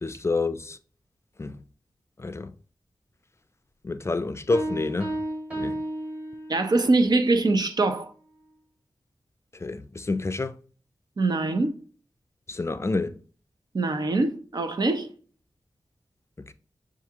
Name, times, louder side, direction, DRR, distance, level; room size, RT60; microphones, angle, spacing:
voice 1, 0.0-0.8 1.4-1.6 2.2-2.5 3.8-5.2 5.6-5.8 9.5-10.6 12.5-13.2 16.5-16.6, left 3 dB, 35° left, 0.4 m, -28 dB
sound 1, 4.5-6.9, right 1 dB, 15° right, 1.9 m, -32 dB
voice 2, 6.5-8.1 11.2-11.8 13.7-15.1, right 2 dB, 55° right, 0.7 m, -23 dB
7.0 x 2.4 x 2.8 m
wide cardioid pair, 60°, 8 cm